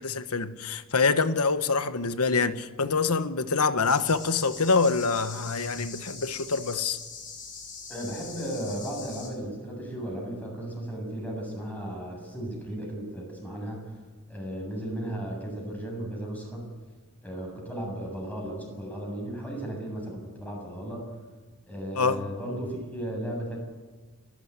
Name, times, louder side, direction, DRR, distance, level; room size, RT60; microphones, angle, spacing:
voice 1, 0.0-7.0 21.9-22.2, left 4 dB, 80° left, 1.3 m, -25 dB
sound 1, 3.8-9.3, left 5 dB, 40° left, 6.1 m, -42 dB
voice 2, 7.9-13.8 14.3-16.7 17.2-21.1 21.7-23.6, right 1 dB, 5° left, 7.8 m, -35 dB
29.5 x 13.0 x 9.8 m
head